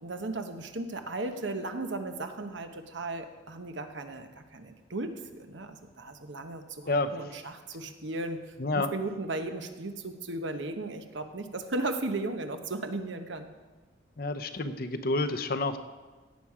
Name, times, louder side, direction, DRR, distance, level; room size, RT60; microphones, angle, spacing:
voice 1, 0.0-13.5, right 2 dB, 75° right, 7 dB, 1.0 m, -36 dB
voice 2, 6.8-7.2 8.6-8.9 14.2-15.8, left 2 dB, 50° left, 9 dB, 0.7 m, -29 dB
17.0 x 7.3 x 4.9 m, 1.3 s
head